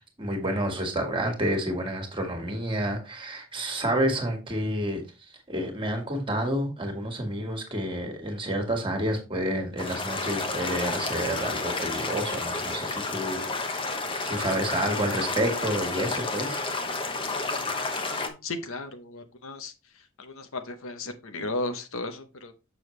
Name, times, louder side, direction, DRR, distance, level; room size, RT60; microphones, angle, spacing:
voice 1, 0.2-5.0 5.5-13.4 13.7-13.9 14.2-16.6, equal, 25° right, 3 dB, 1.8 m, -29 dB
sound 1, 9.8-18.3, left 3 dB, 25° left, 0.9 m, -31 dB
voice 2, 18.1-19.7 20.2-22.5, left 2 dB, 65° left, 8 dB, 0.9 m, -35 dB
6.9 x 6.3 x 3.2 m, 0.29 s
head